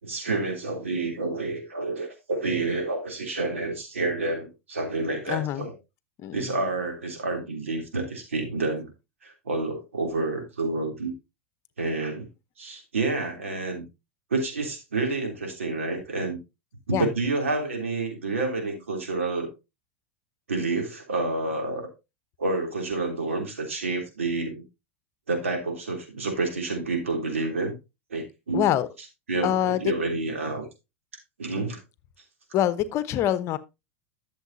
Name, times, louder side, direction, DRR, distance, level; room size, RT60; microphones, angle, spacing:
voice 1, 0.0-5.7 6.3-8.9 9.2-11.1 11.8-12.3 12.6-13.9 14.3-16.4 16.9-19.5 20.5-21.9 22.4-24.6 25.3-27.8 28.1-28.7 29.3-30.6 31.4-31.8, right 3 dB, 90° right, 3.1 m, -29 dB
voice 2, 5.3-5.7 6.2-6.4 16.9-17.1 28.5-28.9 29.4-29.8 32.5-33.6, left 11 dB, 45° left, 0.9 m, -25 dB
12.0 x 7.1 x 2.7 m
hypercardioid pair, 95°, 7 cm